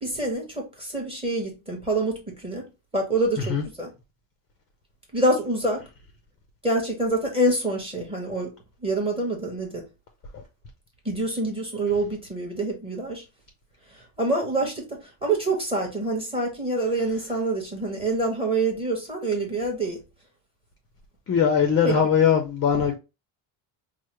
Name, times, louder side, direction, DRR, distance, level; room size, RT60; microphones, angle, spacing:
voice 1, 0.0-2.6 2.9-3.9 5.1-5.8 6.6-8.5 8.8-9.8 11.0-13.2 13.9-20.0 21.8-22.0 22.7-22.8, right 2 dB, 10° right, 1.0 m, -26 dB
voice 2, 21.3-23.0, left 7 dB, 30° left, 0.5 m, -20 dB
4.7 x 2.0 x 3.0 m
cardioid pair, 160°, 49 cm